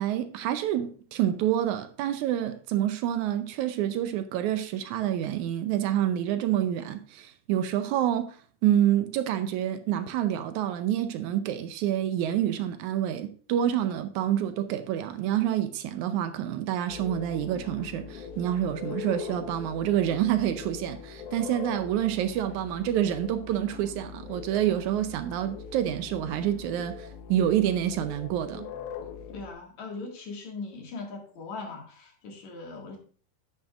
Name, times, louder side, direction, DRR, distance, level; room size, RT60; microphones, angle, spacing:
voice 1, 0.0-8.4 8.6-28.7, right 11 dB, 80° right, 2.0 m, -27 dB
sound 1, 16.9-29.5, left 7 dB, 80° left, 2.3 m, -41 dB
voice 2, 29.3-33.0, left 3 dB, 65° left, 3.3 m, -40 dB
10.5 x 9.0 x 2.4 m
omnidirectional pair, 3.5 m